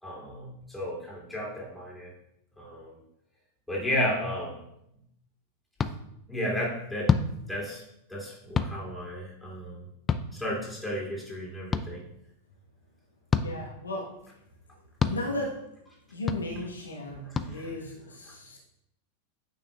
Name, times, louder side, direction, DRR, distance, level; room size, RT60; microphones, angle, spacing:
voice 1, 0.0-2.1 2.6-2.9 3.7-4.6 6.3-7.1 7.5-7.8 8.1-9.8 10.3-12.1 17.5-17.6, left 1 dB, 5° left, -5 dB, 2.7 m, -33 dB
sound 1, 5.8-5.9 7.0-7.3 8.5-8.7 10.1-10.2 11.7-11.8 13.3-13.5 15.0-15.2 16.3-16.4 17.3-17.5, left 6 dB, 20° left, 0.4 m, -25 dB
voice 2, 13.4-14.2 15.0-15.7 16.1-18.6, left 1 dB, 75° left, -1 dB, 1.2 m, -35 dB
9.1 x 5.7 x 2.3 m, 0.80 s
figure-of-eight pair, 90°, 0 cm